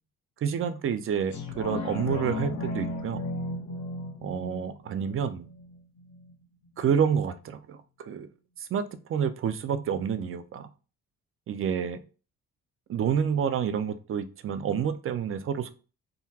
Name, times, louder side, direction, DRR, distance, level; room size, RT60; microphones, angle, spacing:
voice 1, 0.4-3.2 4.2-5.5 6.8-8.3 8.6-8.8 9.1-10.7 11.5-12.0 12.9-15.7, right 7 dB, 45° right, 10 dB, 0.5 m, -28 dB
sound 1, 1.3-6.3 6.8-6.9, left 2 dB, 70° left, 0.9 m, -35 dB
3.8 x 2.2 x 2.7 m, 0.35 s
cardioid pair, 90°, 30 cm